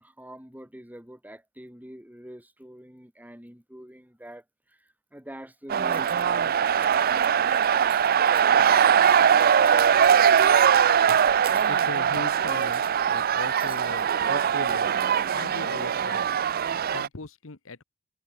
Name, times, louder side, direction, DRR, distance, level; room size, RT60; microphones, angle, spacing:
voice 1, 0.0-4.4 4.7-7.6, equal, 10° right, 5.6 m, -45 dB
sound 1, 5.7-17.1, right 8 dB, 45° right, 0.5 m, -21 dB
Cutlery silverware, 5.9-6.2 6.7-7.3 7.5-9.1 9.5-10.2 10.6-10.8 11.4-12.0 12.4-13.3 13.6-13.9, right 6 dB, 25° right, 6.8 m, -50 dB
voice 2, 11.7-15.0 15.3-16.3 16.9-17.8, left 3 dB, 65° left, 1.3 m, -39 dB
head